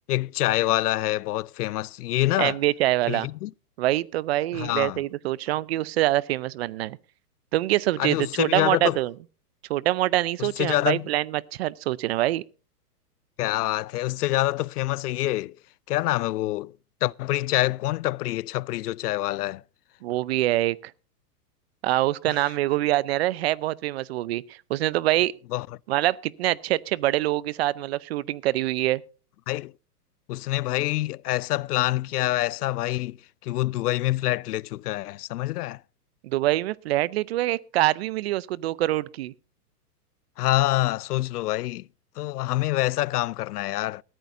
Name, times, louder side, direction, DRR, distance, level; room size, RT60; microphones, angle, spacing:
voice 1, 0.1-2.6 3.1-3.5 4.5-5.0 8.0-9.0 10.4-11.1 13.4-15.6 15.9-16.7 17.0-19.6 22.3-22.5 25.5-25.7 29.5-29.7 30.3-33.2 33.4-35.8 40.4-41.9 42.2-44.0, left 16 dB, 75° left, 0.5 m, -26 dB
voice 2, 2.4-3.3 3.8-7.0 7.5-9.1 9.7-12.4 20.0-20.8 21.8-25.3 25.9-29.0 36.2-39.3, right 16 dB, 45° right, 0.5 m, -25 dB
20.0 x 13.5 x 2.6 m
hypercardioid pair, 140°, 47 cm